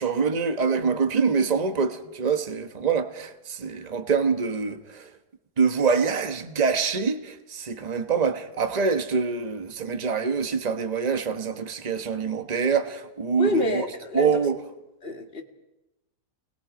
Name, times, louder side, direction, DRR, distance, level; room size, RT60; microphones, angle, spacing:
voice 1, 0.0-5.1 5.6-13.8 14.1-14.6, right 5 dB, 30° right, 1.2 m, -25 dB
voice 2, 13.4-14.4 15.0-15.4, left 1 dB, 40° left, 2.3 m, -27 dB
29.0 x 21.5 x 5.1 m
omnidirectional pair, 1.7 m